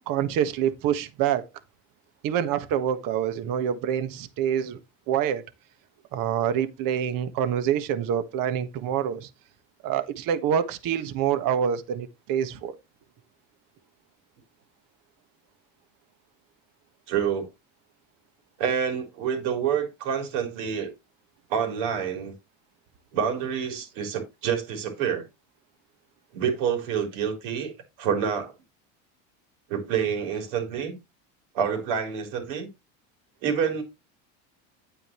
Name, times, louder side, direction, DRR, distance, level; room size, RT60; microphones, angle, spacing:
voice 1, 0.1-1.5 2.2-4.8 5.1-5.4 6.1-9.3 9.8-12.8, right 9 dB, 60° right, 1.6 m, -26 dB
voice 2, 17.1-17.5 18.6-20.9 21.5-22.3 23.1-25.2 26.3-27.7 28.0-28.5 29.7-31.0 31.5-32.7 33.4-33.8, right 7 dB, 75° right, 4.2 m, -27 dB
10.0 x 8.8 x 3.1 m
supercardioid pair, 110°, 38 cm